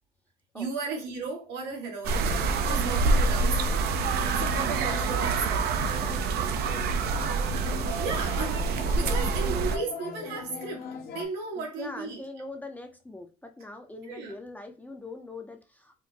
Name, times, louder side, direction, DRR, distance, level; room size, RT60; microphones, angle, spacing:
voice 1, 0.5-2.4 2.7-3.7 4.4-5.7 8.0-10.9 11.1-12.2 14.0-14.3, right 4 dB, 90° right, 1.3 m, -35 dB
sound 1, 2.0-9.8, right 4 dB, 70° right, 0.4 m, -26 dB
sound 2, 2.2-11.3, left 5 dB, 65° left, 0.7 m, -40 dB
voice 2, 11.6-16.1, left 2 dB, 10° left, 0.5 m, -42 dB
4.3 x 2.0 x 2.7 m
cardioid pair, 110°, 17 cm